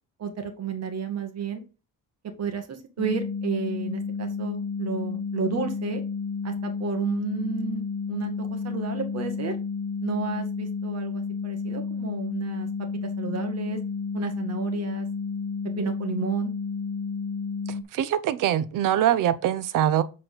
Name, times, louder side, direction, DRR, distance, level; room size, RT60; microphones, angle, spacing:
voice 1, 0.2-1.6 2.4-6.0 6.4-9.6 10.0-12.7 13.2-13.8 14.1-15.1 15.8-16.5, right 6 dB, 55° right, 1.9 m, -32 dB
sound 1, 3.0-17.8, left 5 dB, 60° left, 0.8 m, -31 dB
voice 2, 17.9-20.0, right 11 dB, 80° right, 0.8 m, -23 dB
7.6 x 4.2 x 4.0 m
cardioid pair, 130°, 32 cm